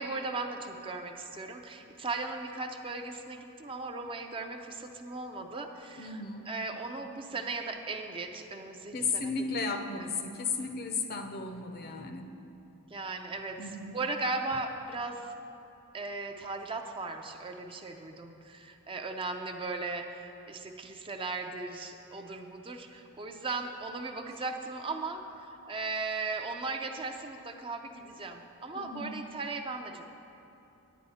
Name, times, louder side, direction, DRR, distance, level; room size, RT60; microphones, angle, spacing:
voice 1, 0.0-9.3 9.9-10.1 12.9-15.3 15.9-30.0, right 3 dB, 25° right, 4 dB, 0.5 m, -37 dB
voice 2, 6.0-6.5 8.9-12.3 13.6-14.0 28.7-29.2, left 4 dB, 45° left, 6 dB, 0.7 m, -34 dB
10.0 x 9.6 x 4.2 m, 2.8 s
head